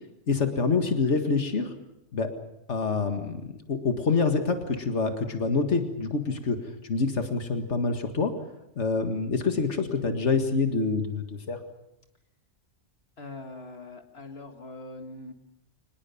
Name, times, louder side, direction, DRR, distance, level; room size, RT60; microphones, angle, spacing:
voice 1, 0.3-1.7 2.1-2.3 2.7-6.6 6.8-8.3 8.8-11.6, left 4 dB, 80° left, 6 dB, 2.1 m, -26 dB
voice 2, 13.2-15.3, left 2 dB, 60° left, 5 dB, 2.1 m, -42 dB
24.5 x 20.0 x 7.1 m, 0.86 s
omnidirectional pair, 1.2 m